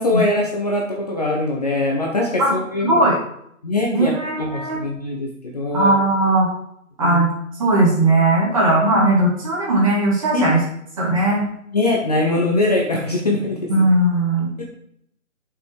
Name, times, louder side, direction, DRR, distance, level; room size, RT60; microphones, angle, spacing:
voice 1, 0.0-3.0 3.6-4.1 4.4-5.9 7.0-7.2 10.3-10.5 11.7-13.6 14.6-14.7, left 2 dB, 30° left, -2 dB, 1.2 m, -22 dB
voice 2, 2.8-3.2 3.9-4.8 5.7-6.5 7.0-7.3 7.6-10.6 11.0-11.4 13.7-14.5, right 1 dB, 25° right, -4 dB, 2.6 m, -18 dB
11.0 x 5.9 x 4.8 m, 0.72 s
hypercardioid pair, 170°, 42 cm